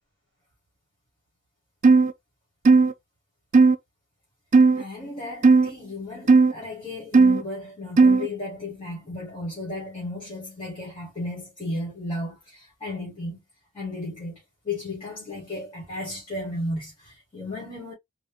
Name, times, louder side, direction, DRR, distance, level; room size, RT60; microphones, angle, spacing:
sound 1, 1.8-2.1 2.7-2.9 3.5-3.8 4.5-4.8 5.4-5.7 6.3-6.5 7.1-7.4 8.0-8.3, right 4 dB, 35° right, 0.4 m, -15 dB
voice 1, 4.8-13.4 13.7-17.9, left 2 dB, 25° left, 2.0 m, -34 dB
4.2 x 2.4 x 3.4 m
head